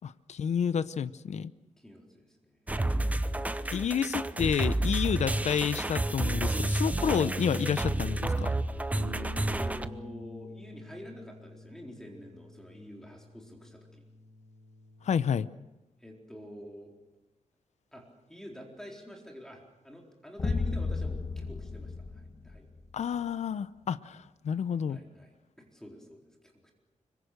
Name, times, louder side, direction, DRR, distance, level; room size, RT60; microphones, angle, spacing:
voice 1, 0.0-1.5 3.7-8.5 15.0-15.5 22.9-25.0, left 7 dB, 60° left, 15 dB, 0.8 m, -30 dB
voice 2, 1.8-2.6 9.1-14.0 16.0-16.9 17.9-22.6 24.9-26.7, equal, 5° left, 0 dB, 4.2 m, -47 dB
sound 1, 2.7-9.9, right 1 dB, 10° right, 0.8 m, -30 dB
Bass guitar, 8.9-15.2, left 1 dB, 35° right, 6.9 m, -47 dB
sound 2, 20.4-23.0, left 3 dB, 30° left, 1.3 m, -33 dB
25.5 x 24.0 x 6.7 m, 0.95 s
wide cardioid pair, 165°, 13 cm